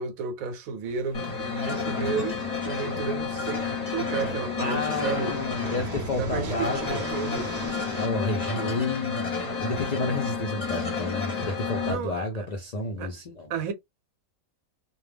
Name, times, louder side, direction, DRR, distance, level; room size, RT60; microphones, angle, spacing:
voice 1, 0.0-2.4 2.6-5.4 6.1-7.5 11.8-12.5 13.0-13.1 13.5-13.7, right 6 dB, 75° right, 1.1 m, -32 dB
sound 1, 0.8-8.1, right 2 dB, 25° right, 0.4 m, -41 dB
sound 2, 1.1-11.9, left 5 dB, 35° left, 0.8 m, -31 dB
voice 2, 4.6-7.2 7.9-13.5, left 2 dB, 75° left, 0.3 m, -31 dB
2.3 x 2.2 x 3.3 m
omnidirectional pair, 1.5 m